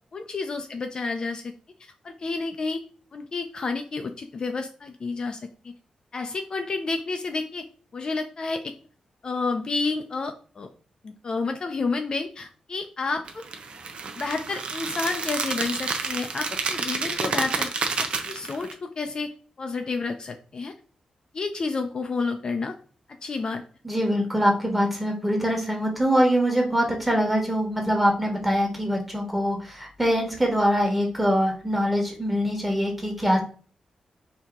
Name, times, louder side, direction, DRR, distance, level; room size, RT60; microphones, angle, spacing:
voice 1, 0.1-1.5 1.8-2.8 3.1-5.4 6.1-7.7 7.9-8.7 9.2-10.7 11.0-13.5 14.1-17.7 18.0-19.3 19.6-20.7 21.3-22.7 23.2-23.6, left 4 dB, 40° left, 5 dB, 0.4 m, -30 dB
sound 1, 13.3-18.7, right 4 dB, 55° right, 0.6 m, -29 dB
voice 2, 23.8-33.4, equal, 5° right, 0 dB, 1.3 m, -23 dB
4.5 x 2.8 x 3.5 m, 0.40 s
wide cardioid pair, 120°, 2 cm